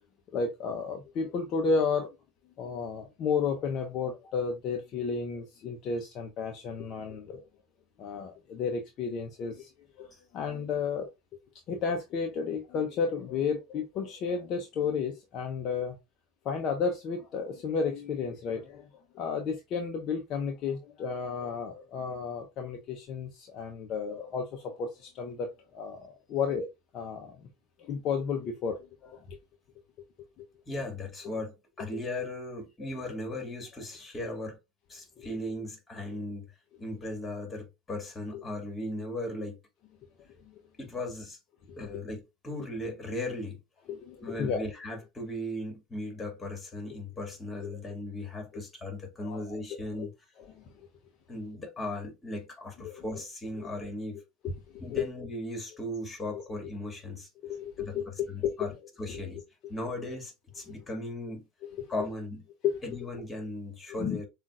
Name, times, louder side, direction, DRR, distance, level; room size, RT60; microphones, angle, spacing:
voice 1, 0.3-2.1 2.6-7.4 8.0-9.7 10.0-10.1 10.3-11.1 11.7-15.9 16.4-18.9 19.1-26.7 26.9-27.4 27.8-29.4 30.4-30.5 30.7-30.8 31.8-31.9 35.2-35.3 36.1-36.2 38.3-38.4 41.7-42.0 42.6-42.7 43.9-44.6 46.9-47.0 47.5-47.8 48.5-48.6 49.2-49.6 49.9-50.1 50.4-50.6 52.8-53.2 53.5-53.7 54.4-55.1 56.3-56.7 57.4-59.4 61.6-62.1 62.6-63.1 64.0-64.2, left 5 dB, 50° left, 0.8 m, -33 dB
voice 2, 30.7-34.6 34.9-36.5 36.8-39.6 40.8-41.4 41.8-43.6 44.2-50.1 51.3-54.2 54.8-57.3 57.8-58.0 58.3-58.7 59.0-59.4 59.7-61.5 61.9-62.4 62.8-64.3, left 1 dB, 20° left, 2.2 m, -37 dB
7.2 x 2.5 x 2.4 m
hypercardioid pair, 85°, 0 cm